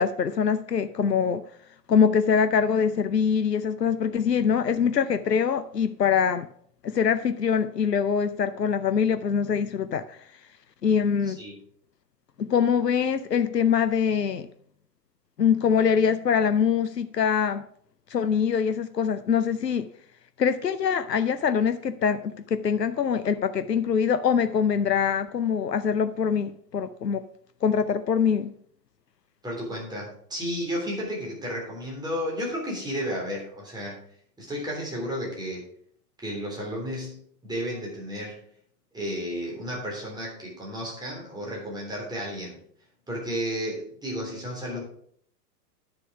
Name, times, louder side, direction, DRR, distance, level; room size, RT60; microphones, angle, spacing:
voice 1, 0.0-1.4 1.9-6.5 6.8-10.2 10.8-11.4 12.4-14.5 15.4-17.6 18.1-19.9 20.4-27.2 27.6-28.5, left 7 dB, 85° left, 12 dB, 0.7 m, -24 dB
voice 2, 11.2-11.6 29.4-34.0 34.4-35.7 36.2-38.4 38.9-42.6 43.1-44.8, equal, 10° right, -3 dB, 3.5 m, -33 dB
9.9 x 6.8 x 4.9 m, 0.63 s
figure-of-eight pair, 100°, 48 cm